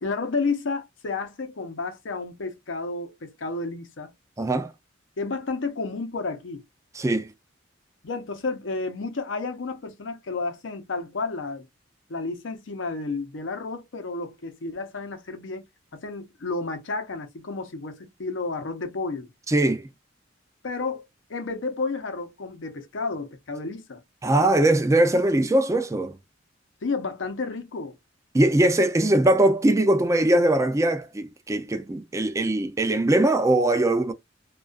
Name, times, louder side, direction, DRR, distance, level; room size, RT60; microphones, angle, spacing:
voice 1, 0.0-4.1 5.2-6.6 8.0-11.7 12.1-15.7 15.9-19.3 20.6-24.0 26.8-28.0, left 3 dB, 75° left, 0.6 m, -31 dB
voice 2, 4.4-4.7 6.9-7.3 19.5-19.9 24.2-26.2 28.3-34.1, right 1 dB, 15° right, 0.4 m, -21 dB
2.3 x 2.3 x 2.3 m
head